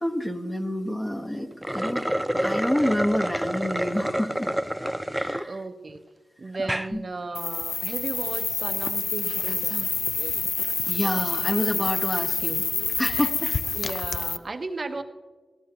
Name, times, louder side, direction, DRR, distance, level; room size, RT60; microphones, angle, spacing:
voice 1, 0.0-2.0 2.4-4.5 5.1-5.6 6.6-7.0 10.9-12.7 13.0-13.5, equal, 20° left, 1 dB, 1.5 m, -28 dB
sound 1, 1.5-5.4 5.9-6.0 6.5-6.9, equal, 5° right, 0.5 m, -28 dB
voice 2, 5.4-6.0 6.4-9.9 13.8-15.0, right 3 dB, 45° right, 7 dB, 0.9 m, -35 dB
sound 2, 7.3-14.4, left 4 dB, 60° left, 0.5 m, -27 dB
21.5 x 16.0 x 3.0 m, 1.4 s
cardioid pair, 75°, 0 cm